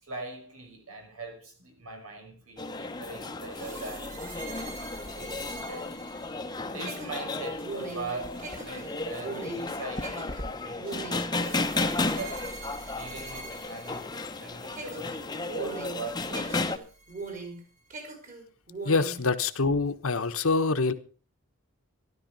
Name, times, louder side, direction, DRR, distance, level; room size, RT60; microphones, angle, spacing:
voice 1, 0.0-4.6 5.1-5.9 6.6-12.5 12.9-14.1 14.4-16.7, right 3 dB, 85° right, 5.8 m, -41 dB
sound 1, 2.6-16.8, left 3 dB, 20° left, 0.9 m, -34 dB
sound 2, 3.5-14.4 14.7-17.6 17.9-19.2, right 3 dB, 35° right, 4.8 m, -41 dB
voice 2, 18.8-20.9, left 3 dB, 75° left, 1.2 m, -25 dB
13.5 x 13.0 x 5.4 m
head